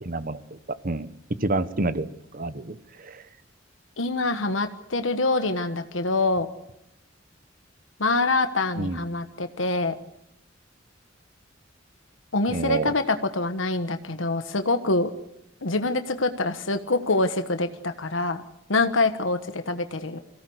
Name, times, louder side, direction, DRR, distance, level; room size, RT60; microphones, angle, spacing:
voice 1, 0.0-1.1 1.4-2.1 2.3-3.2 8.8-9.0 12.5-12.9, right 2 dB, 45° right, 13 dB, 1.2 m, -29 dB
voice 2, 4.0-6.5 8.0-10.0 12.3-15.1 15.6-18.4 18.7-20.2, left 2 dB, 90° left, 9 dB, 1.4 m, -25 dB
23.5 x 16.5 x 8.0 m, 0.84 s
head